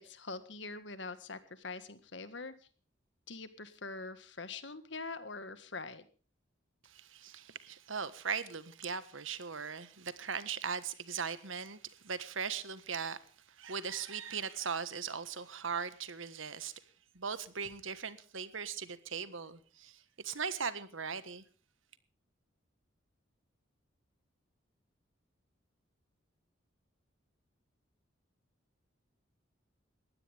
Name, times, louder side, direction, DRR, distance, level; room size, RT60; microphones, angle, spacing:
voice 1, 0.0-2.5 3.3-6.0, left 3 dB, 60° left, 1.7 m, -44 dB
voice 2, 6.8-13.2 13.6-16.8 17.1-21.4, right 6 dB, 75° right, 1.5 m, -39 dB
20.5 x 15.5 x 3.5 m
head